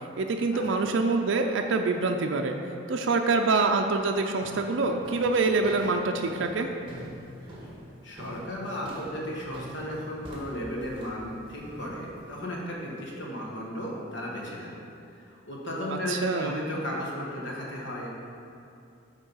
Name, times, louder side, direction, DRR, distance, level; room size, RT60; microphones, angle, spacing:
voice 1, 0.2-2.5 2.9-6.7 16.1-16.5, right 3 dB, 65° right, 3 dB, 0.4 m, -25 dB
sound 1, 3.6-3.9 4.4-12.4, equal, 25° right, 1.2 m, -44 dB
voice 2, 8.0-14.8 15.1-18.1, equal, 65° left, -3 dB, 1.4 m, -35 dB
8.0 x 3.7 x 5.5 m, 2.6 s
head